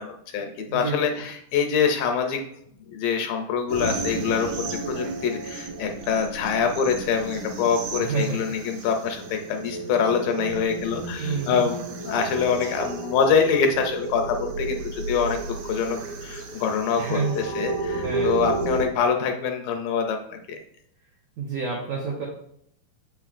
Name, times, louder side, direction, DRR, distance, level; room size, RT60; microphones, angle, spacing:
voice 1, 0.0-2.4 2.8-20.6, left 6 dB, 80° left, 4 dB, 2.1 m, -25 dB
voice 2, 0.7-1.0 8.0-8.4 11.2-11.7 17.0-17.4 18.0-18.4 21.4-22.3, right 4 dB, 85° right, -3 dB, 1.4 m, -28 dB
sound 1, 3.7-18.9, right 3 dB, 70° right, 1.7 m, -32 dB
7.3 x 5.6 x 2.4 m, 0.72 s
omnidirectional pair, 4.2 m